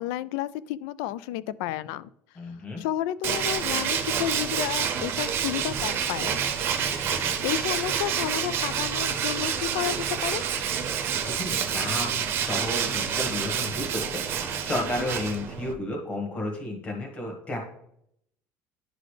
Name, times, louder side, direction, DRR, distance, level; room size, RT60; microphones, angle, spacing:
voice 1, 0.0-2.1 2.8-6.4 7.1-10.0 10.2-10.4 15.0-15.1, left 13 dB, 90° left, 18 dB, 0.3 m, -31 dB
voice 2, 2.3-2.8 6.8-7.3 10.7-10.8 11.2-17.6, left 1 dB, 20° left, 1 dB, 1.4 m, -33 dB
Tools, 3.2-15.7, right 8 dB, 45° right, 0.7 m, -28 dB
10.5 x 4.0 x 3.3 m, 0.71 s
cardioid pair, 165°, 6 cm